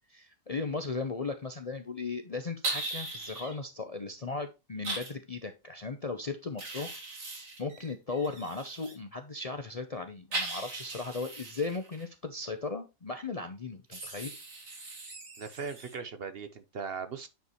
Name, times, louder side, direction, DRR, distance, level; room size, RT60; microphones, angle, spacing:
voice 1, 0.0-7.0 7.6-14.3, left 4 dB, 40° left, 0.6 m, -37 dB
sound 1, 2.6-3.5 4.8-5.1 6.6-8.9 10.3-12.0 13.9-15.9, right 2 dB, 70° right, 2.6 m, -39 dB
voice 2, 15.4-17.3, right 5 dB, 55° right, 0.8 m, -39 dB
9.0 x 5.3 x 3.0 m
omnidirectional pair, 1.4 m